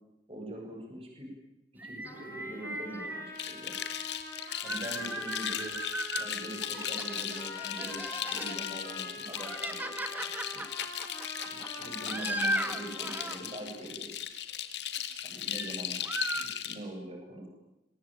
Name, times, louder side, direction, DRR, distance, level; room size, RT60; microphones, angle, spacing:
voice 1, 0.3-1.3 1.8-3.7 4.6-5.8 6.2-8.0 8.2-10.6 11.4-14.1 15.2-16.0 16.3-17.5, right 1 dB, 35° right, 1 dB, 7.9 m, -43 dB
sound 1, 1.8-3.3 4.3-6.3 6.6-8.6 9.1-13.4 15.5-15.8 16.0-16.4, right 1 dB, 10° right, 2.0 m, -37 dB
sound 2, 2.0-13.7, left 2 dB, 15° left, 7.5 m, -44 dB
sound 3, 3.4-16.7, left 10 dB, 85° left, 2.6 m, -37 dB
27.5 x 23.5 x 9.1 m, 0.92 s
head